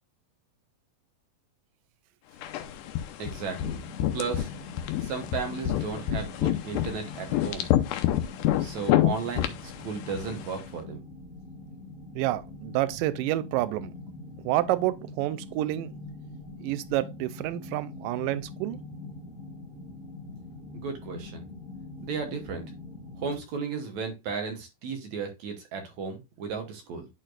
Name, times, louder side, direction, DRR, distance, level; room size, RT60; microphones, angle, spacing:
sound 1, 2.4-10.6, left 13 dB, 80° left, 2.1 m, -28 dB
voice 1, 3.2-3.8 4.1-4.5 5.0-7.7 8.6-11.0 20.7-21.4 22.0-22.7 23.2-27.1, right 5 dB, 65° right, 2.2 m, -35 dB
sound 2, 3.5-23.4, left 3 dB, 25° left, 1.9 m, -43 dB
voice 2, 12.2-13.9 14.5-15.9 16.6-18.8, right 15 dB, 80° right, 2.2 m, -29 dB
11.0 x 4.4 x 2.5 m
omnidirectional pair, 4.0 m